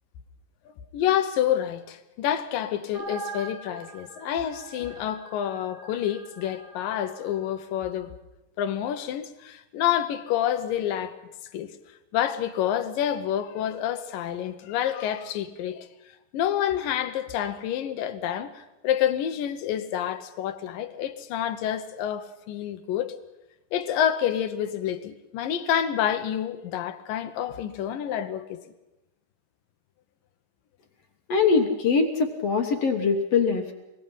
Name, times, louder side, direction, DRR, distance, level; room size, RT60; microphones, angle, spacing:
voice 1, 0.9-8.2 8.6-11.2 11.5-11.7 12.1-15.9 16.3-23.2 23.7-28.6, left 10 dB, 80° left, 2.7 m, -28 dB
sound 1, 2.9-7.4, right 3 dB, 85° right, 9.2 m, -43 dB
voice 2, 31.3-33.7, left 5 dB, 55° left, 2.0 m, -22 dB
24.0 x 21.5 x 5.6 m
omnidirectional pair, 4.0 m